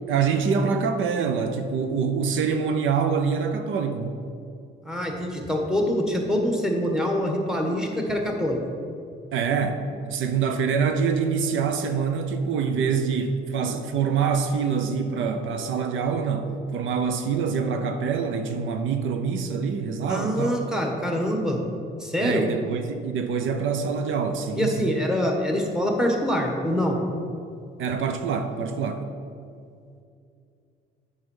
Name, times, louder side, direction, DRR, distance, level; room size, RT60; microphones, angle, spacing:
voice 1, 0.1-4.2 9.3-20.6 22.2-25.0 27.8-29.1, right 6 dB, 80° right, 7 dB, 0.7 m, -25 dB
voice 2, 4.8-8.6 20.1-21.6 22.0-22.4 24.6-27.0, equal, 5° right, 1 dB, 1.4 m, -25 dB
7.8 x 5.5 x 5.5 m, 2.4 s
cardioid pair, 90°, 20 cm